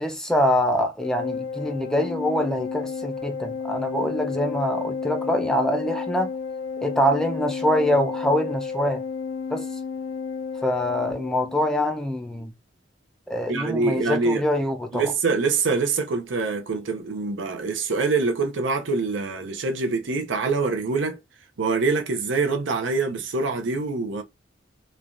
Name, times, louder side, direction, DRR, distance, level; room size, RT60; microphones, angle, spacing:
voice 1, 0.0-6.3 6.8-9.0 9.5-9.6 10.6-12.5 13.3-15.0, equal, 5° left, 0.4 m, -24 dB
Organ, 1.0-11.7, left 5 dB, 70° left, 0.5 m, -31 dB
voice 2, 13.5-14.4 14.9-21.2 21.6-24.2, right 4 dB, 80° right, 0.6 m, -25 dB
3.1 x 2.3 x 2.5 m
head